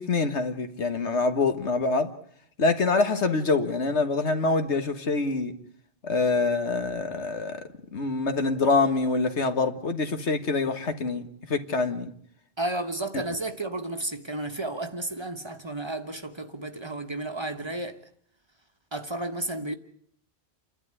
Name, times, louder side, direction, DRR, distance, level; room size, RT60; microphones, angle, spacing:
voice 1, 0.0-2.1 2.6-5.5 6.0-7.6 7.9-12.1, left 3 dB, 85° left, 1.9 m, -25 dB
voice 2, 12.6-18.0 18.9-19.7, right 2 dB, 25° right, 1.3 m, -32 dB
28.5 x 12.0 x 9.8 m
omnidirectional pair, 1.1 m